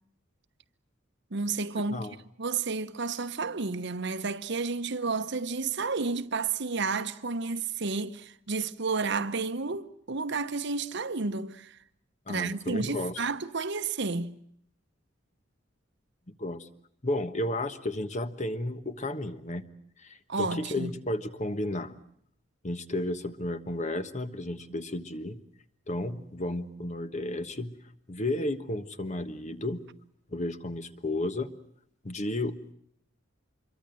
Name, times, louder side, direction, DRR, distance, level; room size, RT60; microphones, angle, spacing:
voice 1, 1.3-2.1 2.4-11.8 12.3-14.4 20.3-20.9, right 4 dB, 60° right, 1.0 m, -31 dB
voice 2, 12.3-13.2 16.4-16.7 17.0-19.6 20.0-22.0 22.6-25.4 25.9-27.7 28.1-29.9 30.3-31.5 32.0-32.7, left 1 dB, 35° left, 1.3 m, -33 dB
26.0 x 23.0 x 7.7 m
head